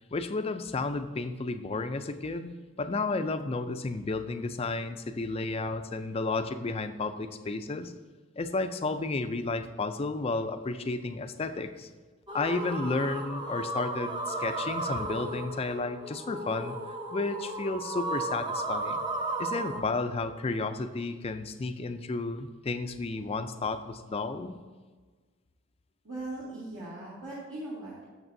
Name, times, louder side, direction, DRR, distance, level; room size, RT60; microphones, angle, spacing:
voice 1, 0.1-2.5 2.8-7.9 8.4-11.9 12.3-16.8 17.1-19.0 19.4-24.6, left 3 dB, 30° left, 9 dB, 0.4 m, -32 dB
sound 1, 12.3-19.8, right 2 dB, 20° right, 0.7 m, -34 dB
voice 2, 26.0-28.0, right 2 dB, 65° right, -9 dB, 2.1 m, -39 dB
12.0 x 7.1 x 2.7 m, 1.4 s
head